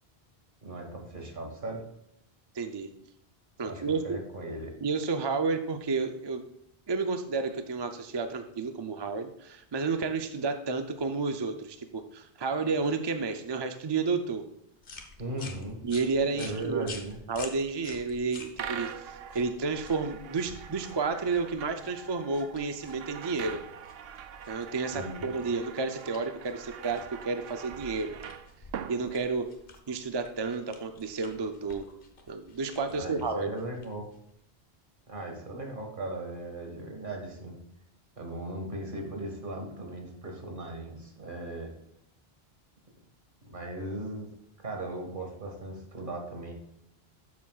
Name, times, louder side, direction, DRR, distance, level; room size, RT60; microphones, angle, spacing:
voice 1, 0.6-1.8 3.6-4.7 15.2-15.8 16.3-17.2 24.9-25.2 32.9-34.1 35.1-37.6 38.2-41.7 43.4-44.3 44.6-46.5, right 2 dB, 55° right, 2 dB, 1.8 m, -38 dB
voice 2, 2.5-2.9 3.6-4.2 4.8-6.4 6.9-14.4 15.8-16.9 17.3-23.6 24.5-28.2 28.9-29.5 29.9-31.9 32.3-33.5, right 4 dB, 35° right, 7 dB, 0.4 m, -31 dB
sound 1, 14.8-34.4, left 3 dB, 60° left, 1.2 m, -50 dB
sound 2, 18.5-29.8, right 8 dB, 75° right, 0.8 m, -43 dB
12.0 x 7.2 x 2.4 m, 0.75 s
omnidirectional pair, 1.0 m